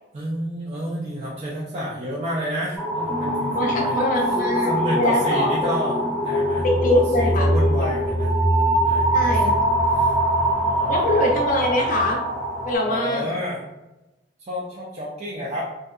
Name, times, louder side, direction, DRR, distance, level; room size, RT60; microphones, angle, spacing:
voice 1, 0.1-6.7 6.9-8.3 8.8-9.7 9.9-11.0 12.9-13.6 14.5-15.7, equal, 40° right, -5 dB, 0.4 m, -30 dB
sound 1, 2.8-12.7, right 1 dB, 15° left, 0.8 m, -22 dB
voice 2, 3.5-5.5 6.6-7.5 7.8-7.9 9.1-9.9 10.9-12.2 12.6-13.3, left 1 dB, 50° left, 0 dB, 0.5 m, -23 dB
2.6 x 2.2 x 2.3 m, 0.99 s
head